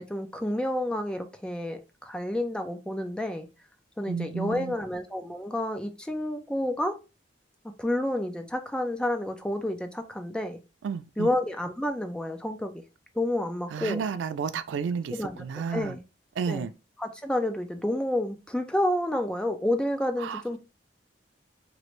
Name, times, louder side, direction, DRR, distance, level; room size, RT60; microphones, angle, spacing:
voice 1, 0.0-3.5 4.0-7.0 7.6-10.6 11.2-12.8 13.2-14.0 15.1-16.0 16.5-16.7 17.0-20.6, left 1 dB, 5° left, 0.4 m, -30 dB
voice 2, 4.1-4.7 10.8-11.3 13.7-15.9 16.4-16.7 20.2-20.4, right 6 dB, 85° right, 0.3 m, -32 dB
3.1 x 2.5 x 3.1 m
head